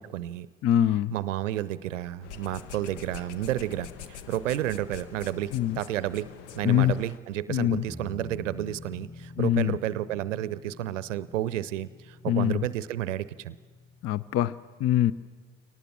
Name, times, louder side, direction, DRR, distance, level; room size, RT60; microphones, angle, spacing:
voice 1, 0.0-0.5 1.1-13.6, right 13 dB, 80° right, 18 dB, 0.6 m, -31 dB
voice 2, 0.6-1.1 5.5-5.8 6.6-6.9 7.5-7.9 9.4-9.8 12.3-12.6 14.0-15.1, left 12 dB, 40° left, 19 dB, 0.5 m, -24 dB
sound 1, 2.2-7.2, left 8 dB, 70° left, 0.9 m, -44 dB
sound 2, 7.9-14.4, left 2 dB, 15° left, 5.2 m, -47 dB
23.0 x 18.5 x 7.4 m, 1.5 s
figure-of-eight pair, 50°, 37 cm